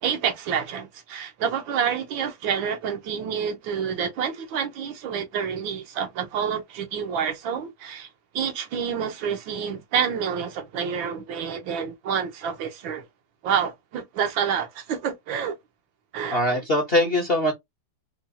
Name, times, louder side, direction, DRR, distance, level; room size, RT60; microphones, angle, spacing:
voice 1, 0.0-8.1 8.3-13.0 13.4-15.5 16.1-16.4, right 7 dB, 80° right, 1.6 m, -28 dB
voice 2, 16.3-17.5, left 1 dB, 50° left, 0.7 m, -22 dB
4.3 x 2.3 x 2.6 m
omnidirectional pair, 2.1 m